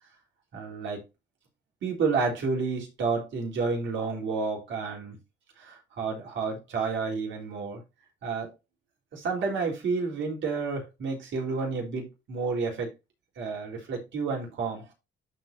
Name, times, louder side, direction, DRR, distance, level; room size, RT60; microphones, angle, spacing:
voice 1, 0.5-1.0 1.8-5.2 5.6-7.8 8.2-8.5 9.1-12.9 13.4-14.9, right 4 dB, 70° right, 4.1 m, -30 dB
13.5 x 4.7 x 2.7 m
cardioid pair, 90°, 20 cm